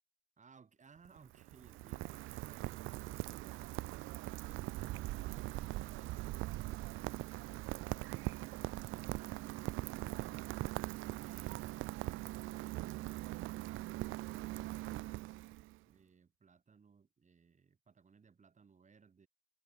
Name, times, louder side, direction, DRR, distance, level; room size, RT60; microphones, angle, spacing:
voice 1, 0.4-3.8 15.9-19.3, right 5 dB, 35° right, 3.5 m, -64 dB
Rain, 1.0-15.8, right 19 dB, 85° right, 0.4 m, -41 dB
open air
cardioid pair, 90°, 20 cm